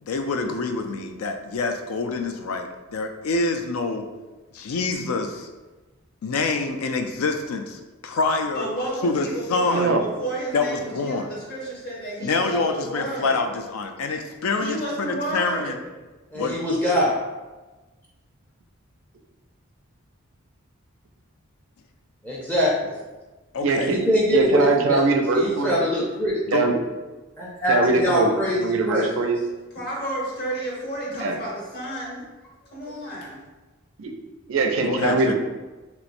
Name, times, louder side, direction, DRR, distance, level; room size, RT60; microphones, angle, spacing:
voice 1, 0.0-4.0 4.5-5.5 6.2-8.7 9.0-9.9 10.5-11.3 12.2-15.8 16.3-16.6 23.5-23.9 26.5-26.7 34.9-35.3, left 3 dB, 85° left, 6 dB, 0.4 m, -26 dB
voice 2, 8.5-13.4 14.6-15.8 29.7-33.4, right 1 dB, 45° left, -4 dB, 1.0 m, -32 dB
voice 3, 9.7-10.0 23.6-24.0 24.3-25.8 26.5-26.8 27.7-29.4 31.2-31.3 34.0-34.1 34.5-35.3, right 3 dB, 65° right, 3 dB, 0.4 m, -22 dB
voice 4, 16.3-17.2 22.2-22.9 23.9-25.0 25.3-26.3 27.4-28.6 28.9-29.1, equal, 10° left, -5 dB, 0.4 m, -23 dB
3.0 x 3.0 x 2.5 m, 1.2 s
head